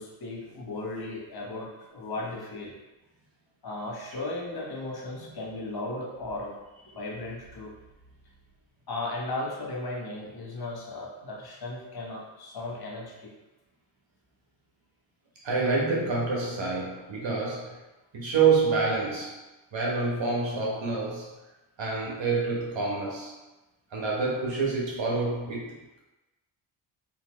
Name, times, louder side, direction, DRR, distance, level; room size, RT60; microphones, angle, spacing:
voice 1, 0.0-2.7 3.6-6.6 6.9-7.7 8.9-13.3, left 2 dB, 50° left, -2 dB, 1.3 m, -36 dB
voice 2, 5.1-5.4 6.8-7.3 15.4-17.8 18.1-19.4 19.7-21.3 21.8-23.4 23.9-26.0, right 4 dB, 65° right, -3 dB, 1.3 m, -28 dB
3.7 x 2.9 x 3.1 m, 1.1 s
cardioid pair, 50°, 49 cm